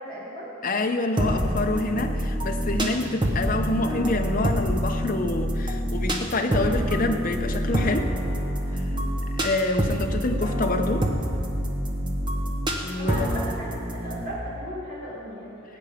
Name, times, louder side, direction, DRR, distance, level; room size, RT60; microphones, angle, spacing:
voice 1, 0.0-0.5 8.9-9.2 13.0-13.7 13.9-15.8, equal, 45° right, -6 dB, 3.5 m, -36 dB
voice 2, 0.6-8.1 8.7-8.8 9.4-11.1 12.8-13.3, left 2 dB, 40° left, 4 dB, 0.7 m, -27 dB
sound 1, 1.2-14.3, equal, 20° right, 1.0 m, -26 dB
17.5 x 8.7 x 5.1 m, 2.6 s
head